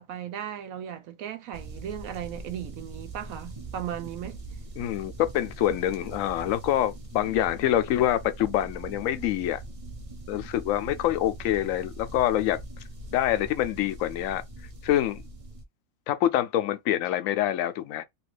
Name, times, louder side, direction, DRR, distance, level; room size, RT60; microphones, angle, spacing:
voice 1, 0.0-4.4, right 10 dB, 75° right, 1.1 m, -36 dB
sound 1, 1.5-15.6, right 2 dB, 35° right, 0.6 m, -42 dB
voice 2, 4.8-9.6 10.3-12.6 13.1-14.4 14.8-15.2 16.1-18.0, left 12 dB, 75° left, 0.9 m, -26 dB
2.9 x 2.5 x 3.2 m
omnidirectional pair, 1.5 m